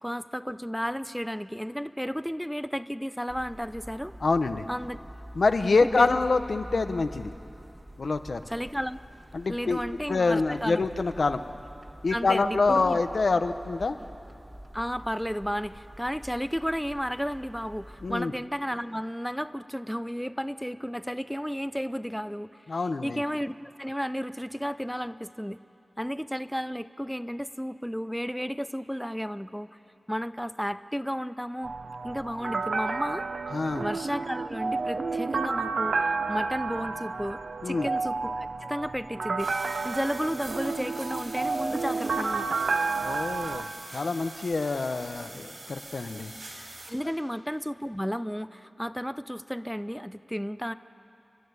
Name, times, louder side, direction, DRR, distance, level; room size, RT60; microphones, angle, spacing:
voice 1, 0.0-4.1 4.7-5.0 5.8-6.2 8.5-9.0 9.5-10.9 12.1-13.0 14.7-22.6 23.0-25.6 26.0-29.7 30.1-31.7 32.0-33.3 33.8-39.5 39.8-42.6 46.9-50.7, equal, ahead, 12 dB, 0.5 m, -33 dB
sound 1, 3.3-18.2, equal, 20° right, 1.6 m, -47 dB
voice 2, 4.2-4.6 5.3-7.3 8.0-8.4 9.3-9.8 10.1-11.4 12.0-14.0 18.0-18.3 22.7-23.2 33.5-33.8 37.6-37.9 43.0-43.7 43.9-46.3, left 3 dB, 80° left, 8 dB, 0.9 m, -26 dB
sound 2, 31.6-43.6, right 4 dB, 80° right, 0.7 m, -31 dB
sound 3, 39.4-46.9, right 2 dB, 65° right, 4.8 m, -44 dB
30.0 x 12.0 x 9.6 m, 2.8 s
wide cardioid pair, 65°, 0 cm